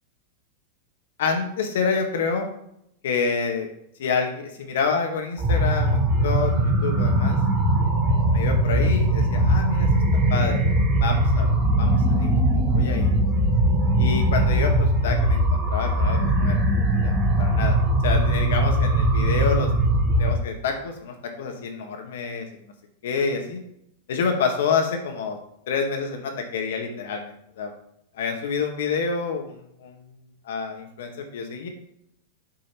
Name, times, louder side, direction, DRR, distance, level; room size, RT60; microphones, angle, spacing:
voice 1, 1.2-2.5 3.0-3.7 4.0-7.4 8.3-9.9 10.3-10.6 11.0-13.1 14.0-16.6 17.0-17.1 17.4-17.8 18.0-19.7 20.2-22.7 23.0-23.6 24.1-25.4 25.7-27.7 28.2-30.0 30.5-31.7, left 5 dB, 70° left, 4 dB, 1.9 m, -28 dB
sound 1, 5.4-20.4, right 1 dB, 35° right, 3.4 m, -20 dB
8.5 x 5.1 x 4.6 m, 0.76 s
hypercardioid pair, 105°, 0 cm